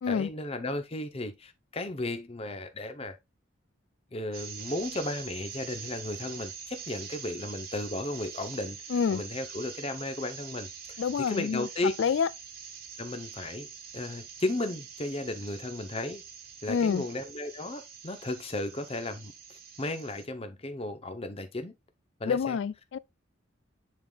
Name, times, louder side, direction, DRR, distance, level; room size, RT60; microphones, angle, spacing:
voice 1, 0.1-3.2 4.1-11.9 13.0-13.7 13.9-16.2 16.6-21.7 22.2-22.6, left 2 dB, 30° left, 0.7 m, -35 dB
sound 1, 4.3-20.3, right 6 dB, 50° right, 1.4 m, -44 dB
voice 2, 8.9-9.2 11.0-12.3 16.7-17.0 22.3-23.0, left 6 dB, 65° left, 0.3 m, -28 dB
10.5 x 3.8 x 2.3 m
head